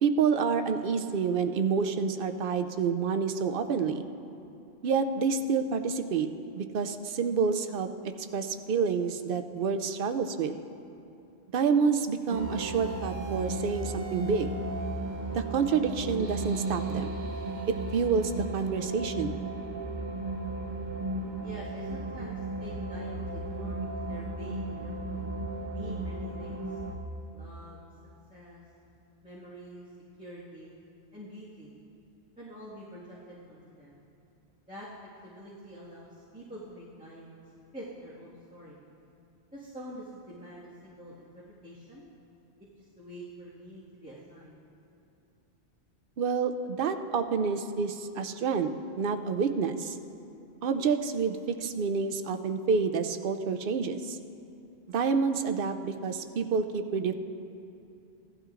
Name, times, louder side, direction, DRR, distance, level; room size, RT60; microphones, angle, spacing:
voice 1, 0.0-4.0 4.8-6.3 6.5-7.9 8.3-10.6 11.5-14.5 15.3-17.2 17.7-19.4 46.2-50.0 50.6-54.2 54.9-57.1, right 5 dB, 60° right, 8 dB, 0.7 m, -28 dB
sound 1, 12.3-27.0, right 2 dB, 45° right, 1.0 m, -35 dB
voice 2, 21.4-25.2 25.7-26.8 27.3-27.8 28.3-28.6 29.2-29.9 30.2-30.7 31.1-31.7 32.4-34.0 34.7-34.9 35.2-37.4 37.7-38.8 39.5-42.0 42.8-44.6, equal, 5° right, -11 dB, 1.7 m, -46 dB
17.0 x 12.0 x 2.5 m, 2.7 s
omnidirectional pair, 1.1 m